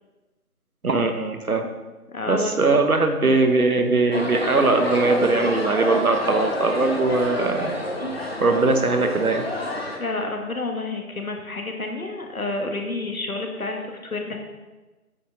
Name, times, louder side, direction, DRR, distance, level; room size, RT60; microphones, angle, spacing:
voice 1, 0.8-1.6 2.3-7.7 8.4-9.4, right 3 dB, 65° right, 6 dB, 1.1 m, -20 dB
voice 2, 2.1-2.6 10.0-14.4, left 2 dB, 65° left, 3 dB, 1.5 m, -29 dB
sound 1, 4.1-10.0, left 1 dB, 40° left, 1.1 m, -28 dB
9.2 x 5.8 x 3.8 m, 1.2 s
figure-of-eight pair, 170°, 46 cm